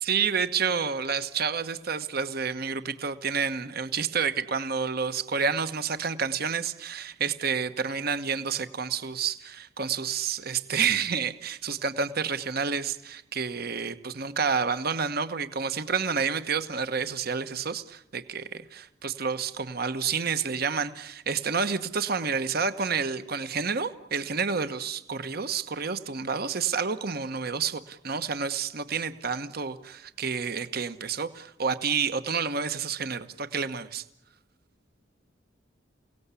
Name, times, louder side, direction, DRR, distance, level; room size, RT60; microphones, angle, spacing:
voice 1, 0.0-34.0, right 6 dB, 55° right, 11 dB, 1.2 m, -29 dB
28.5 x 18.0 x 8.4 m, 0.84 s
head